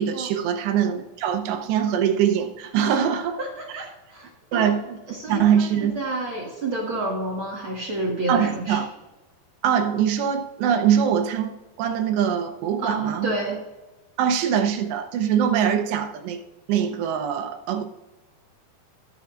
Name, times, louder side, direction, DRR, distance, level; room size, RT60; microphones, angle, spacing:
voice 1, 0.0-3.4 3.7-3.9 4.5-5.0 5.3-5.9 8.3-8.9 9.6-13.3 14.2-16.4 16.7-17.8, right 8 dB, 90° right, 5 dB, 3.0 m, -23 dB
voice 2, 3.4-4.7 5.1-5.7 5.9-8.8 12.8-13.6, right 2 dB, 60° right, -2 dB, 1.3 m, -29 dB
20.5 x 7.0 x 2.5 m, 1.1 s
omnidirectional pair, 4.8 m